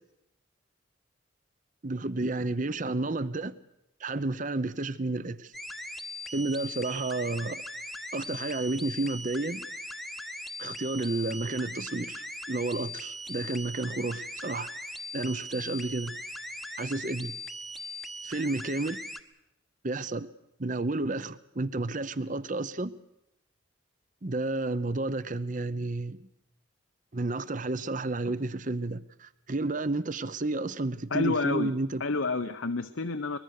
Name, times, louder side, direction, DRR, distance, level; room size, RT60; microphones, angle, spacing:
voice 1, 1.8-3.5 4.0-5.5 6.3-7.6 8.1-9.7 10.6-14.7 15.1-16.2 16.8-17.4 18.2-19.0 19.8-20.3 20.6-22.9 24.2-26.2 27.1-32.0, right 2 dB, 40° right, 16 dB, 0.8 m, -31 dB
sound 1, 5.5-19.2, left 1 dB, ahead, 0.9 m, -40 dB
voice 2, 31.1-31.7 32.0-33.4, left 3 dB, 75° left, 9 dB, 0.9 m, -29 dB
23.5 x 21.0 x 6.7 m, 0.84 s
head